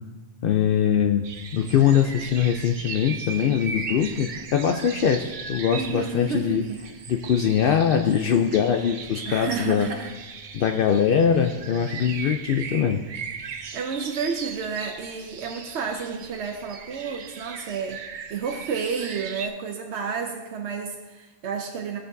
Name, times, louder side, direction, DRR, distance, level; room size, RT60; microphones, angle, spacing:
voice 1, 0.4-6.6 7.1-9.9 10.5-13.0, left 8 dB, 65° left, 4 dB, 0.7 m, -22 dB
sound 1, 1.2-19.5, right 5 dB, 55° right, 0.7 m, -38 dB
voice 2, 5.7-6.8 9.2-10.1 13.4-18.0 18.3-22.0, right 6 dB, 90° right, 2 dB, 1.0 m, -31 dB
16.0 x 6.5 x 2.6 m, 1.2 s
omnidirectional pair, 1.1 m